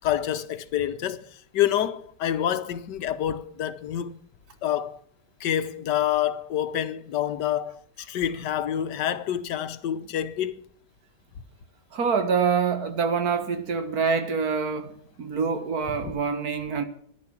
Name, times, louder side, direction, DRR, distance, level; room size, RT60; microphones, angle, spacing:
voice 1, 0.0-4.3 4.6-5.0 5.4-10.6, left 11 dB, 85° left, 1.5 m, -27 dB
voice 2, 11.9-14.9 15.2-16.8, right 5 dB, 65° right, 1.8 m, -25 dB
13.5 x 10.5 x 6.0 m
omnidirectional pair, 1.8 m